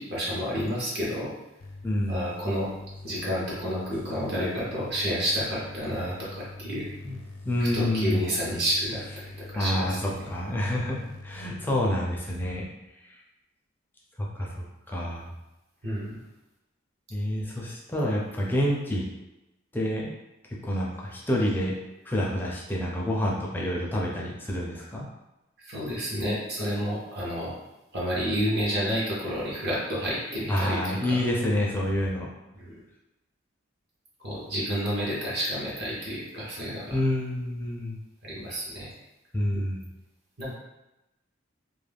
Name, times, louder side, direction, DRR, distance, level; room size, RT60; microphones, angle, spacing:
voice 1, 0.0-1.3 2.1-2.7 3.0-6.9 7.6-10.3 15.8-16.2 25.6-27.5 27.9-31.2 32.6-32.8 34.2-37.0 38.2-38.9 39.5-39.6 40.4-40.5, equal, 55° right, -6 dB, 0.8 m, -30 dB
sound 1, 1.6-11.7, left 2 dB, 70° left, 0.4 m, -43 dB
voice 2, 1.8-2.3 7.0-7.2 7.5-8.3 9.5-12.7 14.2-15.3 17.1-19.1 19.7-20.1 20.5-21.8 22.1-25.1 30.5-32.3 36.9-38.0 39.3-39.9, left 1 dB, 10° left, -3 dB, 0.4 m, -28 dB
2.3 x 2.2 x 3.3 m, 0.97 s
head